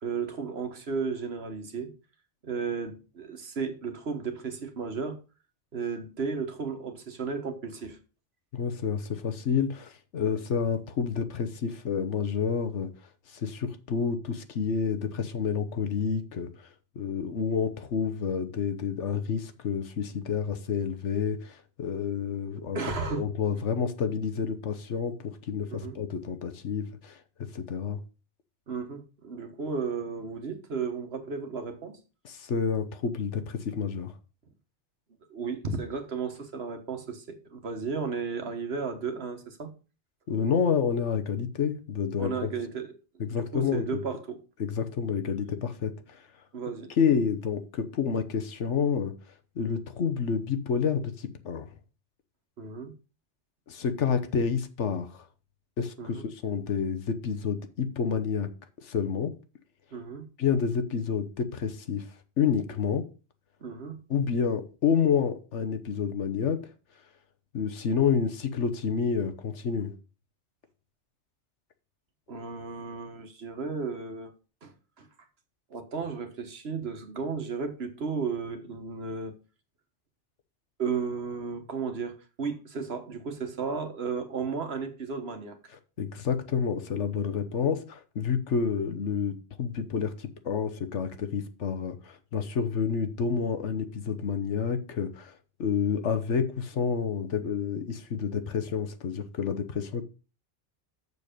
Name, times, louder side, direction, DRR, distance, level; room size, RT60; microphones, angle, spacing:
voice 1, 0.0-1.9 2.4-5.2 5.7-8.0 22.7-23.3 25.7-26.0 28.7-32.0 35.3-39.7 42.2-42.9 43.3-44.4 46.5-46.9 52.6-52.9 56.0-56.2 59.9-60.3 63.6-64.0 72.3-74.3 74.6-75.1 75.7-79.3 80.8-85.6, right 5 dB, 60° right, 1.5 m, -34 dB
voice 2, 8.5-12.9 13.3-16.5 16.9-22.8 23.1-27.2 27.5-28.0 32.2-34.1 40.3-42.5 43.2-44.0 44.6-46.3 47.0-49.1 49.6-51.7 53.7-55.3 55.8-58.5 58.8-59.3 60.4-62.1 62.4-63.0 64.1-66.6 67.5-69.9 86.0-100.0, left 6 dB, 80° left, 1.3 m, -29 dB
6.9 x 6.8 x 5.1 m
omnidirectional pair, 1.2 m